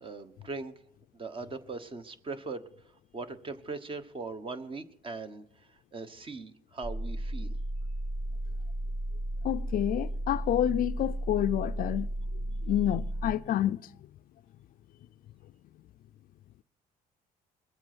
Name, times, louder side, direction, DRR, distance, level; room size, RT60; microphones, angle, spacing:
voice 1, 0.0-0.7 1.1-2.7 3.1-7.5, right 3 dB, 30° right, 1.2 m, -40 dB
sound 1, 6.8-13.3, right 1 dB, 15° right, 0.5 m, -34 dB
voice 2, 9.4-12.1 12.7-13.8, left 12 dB, 55° left, 0.4 m, -28 dB
21.5 x 7.6 x 6.0 m
cardioid pair, 110°, 17 cm